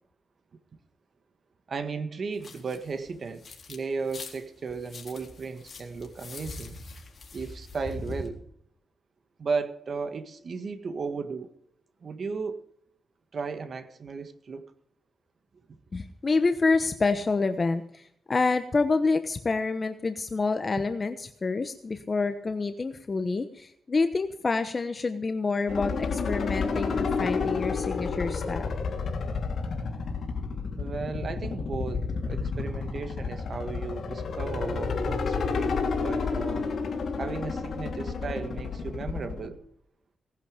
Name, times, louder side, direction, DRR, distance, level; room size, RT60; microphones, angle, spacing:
voice 1, 1.7-3.4 3.7-6.8 7.3-8.4 9.4-11.5 12.0-12.6 13.3-14.7 30.8-36.7 37.2-39.6, right 4 dB, 55° right, 9 dB, 1.6 m, -35 dB
sound 1, 2.4-3.8 4.1-8.3, left 2 dB, 50° left, 3.8 m, -42 dB
voice 2, 15.9-28.7, left 3 dB, 35° left, 8 dB, 1.0 m, -27 dB
sound 2, 25.7-39.5, left 4 dB, 65° left, 3.2 m, -30 dB
18.5 x 11.5 x 5.1 m, 0.71 s
cardioid pair, 95°, 0 cm